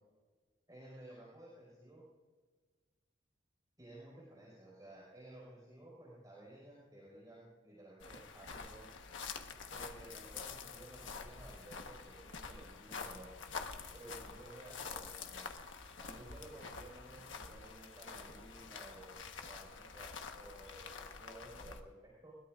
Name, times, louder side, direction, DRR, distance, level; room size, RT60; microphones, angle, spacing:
voice 1, 0.7-2.0 3.8-8.9 9.7-13.3 13.9-15.5 16.0-22.3, right 1 dB, 20° right, -6 dB, 5.4 m, -55 dB
sound 1, 8.0-21.8, left 5 dB, 75° left, 1.3 m, -47 dB
22.0 x 20.5 x 2.6 m, 1.4 s
head